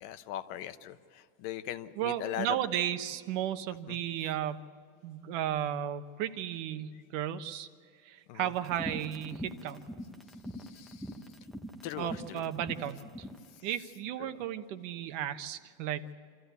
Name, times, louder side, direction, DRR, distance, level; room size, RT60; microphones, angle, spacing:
voice 1, 0.0-2.6 3.9-4.0 8.3-8.5 10.6-11.1 11.8-12.4 14.2-14.3, left 12 dB, 50° left, 11 dB, 1.0 m, -40 dB
voice 2, 2.0-4.6 5.0-7.7 8.0-9.8 12.0-13.0 13.6-16.1, right 11 dB, 65° right, 10 dB, 1.2 m, -34 dB
sound 1, 8.6-13.4, equal, ahead, 0.7 m, -42 dB
27.0 x 14.0 x 8.3 m, 2.2 s
supercardioid pair, 160°, 40 cm